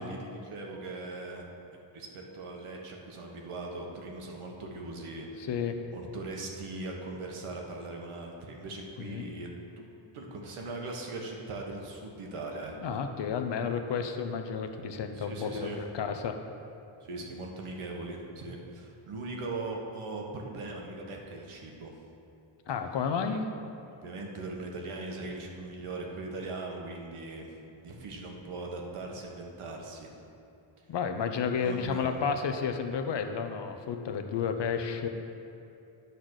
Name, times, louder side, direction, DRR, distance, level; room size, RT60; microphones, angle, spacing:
voice 1, 0.0-1.5 1.9-5.5 5.9-9.5 9.8-9.9 10.1-13.0 15.1-15.8 17.0-21.9 24.0-27.6 27.8-30.1 30.8-30.9 31.6-32.2, right 2 dB, 80° right, 0 dB, 1.4 m, -40 dB
voice 2, 12.8-15.7 15.9-16.3 22.7-23.5 30.9-35.1, left 6 dB, 55° left, 6 dB, 0.7 m, -31 dB
10.5 x 4.1 x 6.4 m, 2.8 s
wide cardioid pair, 135°, 50 cm